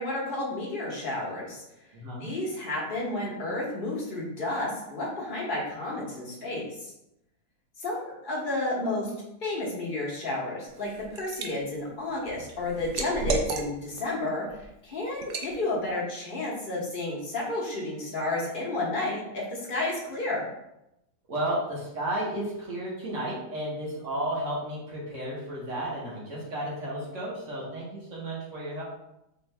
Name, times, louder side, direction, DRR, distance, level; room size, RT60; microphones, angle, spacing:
voice 1, 0.0-1.6 2.2-6.9 7.8-9.1 9.4-20.4, left 2 dB, 35° left, -4 dB, 1.0 m, -31 dB
voice 2, 1.9-2.3 21.3-28.8, right 1 dB, 50° right, -5 dB, 1.5 m, -33 dB
Liquid, 10.7-11.5 11.9-14.0 14.5-14.7 15.2-15.5, right 4 dB, 80° right, 0.6 m, -32 dB
4.5 x 2.5 x 3.2 m, 0.87 s
omnidirectional pair, 1.8 m